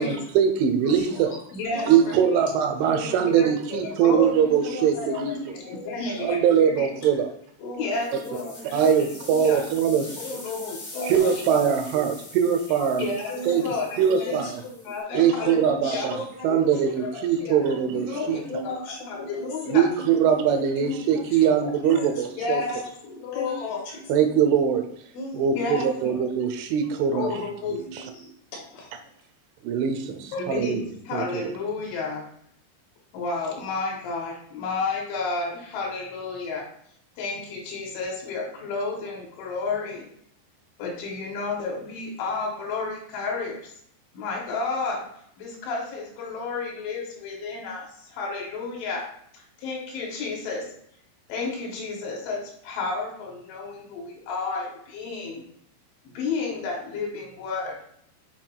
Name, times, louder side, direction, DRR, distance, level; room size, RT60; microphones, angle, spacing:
voice 1, 0.0-1.3 1.9-5.4 6.2-7.3 8.7-10.2 11.1-13.1 13.5-13.6 14.0-14.5 15.1-16.2 16.4-18.4 19.7-22.6 24.1-24.9 25.3-27.3 27.9-28.0 29.6-30.8 31.1-31.5, right 8 dB, 90° right, 6 dB, 3.2 m, -22 dB
voice 2, 1.2-2.2 3.2-3.5 3.9-6.9 7.8-8.5 9.0-9.6 10.1-11.3 13.0-14.4 14.9-16.7 17.1-18.7 19.1-19.8 20.8-21.7 22.4-23.8 25.5-26.3 27.1-27.8 30.3-32.2 33.1-36.6 37.2-40.0 40.8-43.7 44.1-45.0 45.4-49.0 49.3-50.6 51.3-55.4 56.0-57.8, left 4 dB, 85° left, -2 dB, 4.4 m, -32 dB
voice 3, 1.7-2.3 2.8-3.6 4.0-4.1 4.5-6.3 7.6-9.0 9.3-11.7 13.3-16.8 17.9-20.7 21.3-21.4 21.8-22.2 22.5-22.7 23.0-24.0 25.1-25.6 27.7-28.9, left 1 dB, 60° left, -3 dB, 3.8 m, -38 dB
sound 1, 7.9-15.0, left 2 dB, 45° left, 1.4 m, -43 dB
9.3 x 5.8 x 2.3 m, 0.67 s
omnidirectional pair, 5.3 m